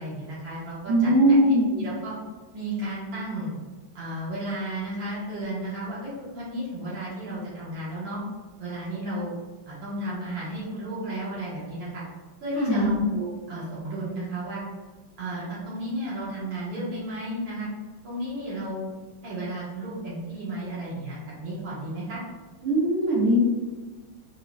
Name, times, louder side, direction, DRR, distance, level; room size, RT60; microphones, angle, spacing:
voice 1, 0.0-2.1 2.5-3.6 4.0-8.2 8.6-9.3 9.7-12.0 12.4-14.6 15.2-17.7 18.0-18.9 19.2-22.2, right 1 dB, 70° right, -7 dB, 2.0 m, -33 dB
voice 2, 0.9-1.8 12.6-13.0 22.6-23.4, right 1 dB, 90° right, -6 dB, 1.7 m, -20 dB
5.4 x 2.5 x 2.3 m, 1.3 s
omnidirectional pair, 2.2 m